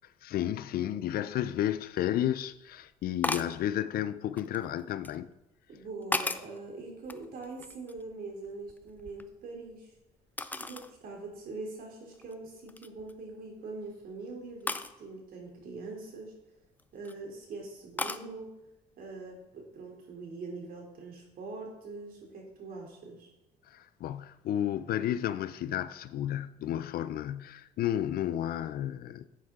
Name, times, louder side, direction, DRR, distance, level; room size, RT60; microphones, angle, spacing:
voice 1, 0.2-5.3 23.7-29.2, left 11 dB, 65° left, 0.5 m, -32 dB
sound 1, 1.8-1.9 3.2-3.6 4.4-5.2 5.8-6.6 7.0-8.1 8.4-9.7 10.4-10.9 11.4-11.5 12.1-12.3 12.7-13.1 14.7-14.9 16.6-17.1 18.0-18.3, left 2 dB, 10° left, 0.5 m, -35 dB
voice 2, 5.7-9.9 10.6-16.3 16.9-18.5 19.0-23.3, right 3 dB, 60° right, 3.2 m, -43 dB
11.5 x 8.1 x 3.7 m
cardioid pair, 110°, 17 cm